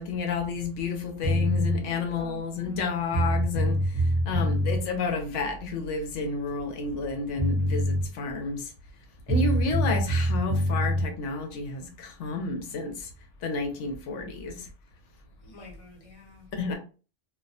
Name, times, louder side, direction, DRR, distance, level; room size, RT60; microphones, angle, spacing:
voice 1, 0.0-8.7 9.3-13.1 13.4-14.7 16.5-16.8, left 4 dB, 80° left, 0.9 m, -31 dB
sound 1, 1.2-1.8 2.8-2.9 3.1-4.8 7.0-7.1 7.4-8.0 9.3-11.0, equal, 15° right, 0.6 m, -25 dB
voice 2, 1.9-2.8 15.4-16.5, left 1 dB, 35° left, 0.8 m, -47 dB
2.2 x 2.1 x 2.6 m
omnidirectional pair, 1.2 m